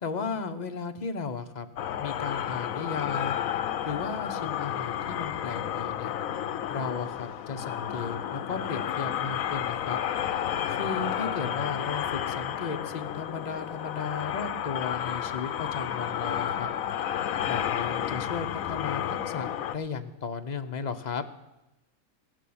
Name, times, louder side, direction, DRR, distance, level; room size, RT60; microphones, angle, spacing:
voice 1, 0.0-3.3 3.8-6.1 6.7-10.0 10.7-16.7 17.4-21.2, left 5 dB, 40° left, 7 dB, 0.6 m, -35 dB
sound 1, 1.8-19.7, left 10 dB, 70° left, 1.0 m, -31 dB
16.0 x 6.2 x 8.5 m, 0.97 s
omnidirectional pair, 1.5 m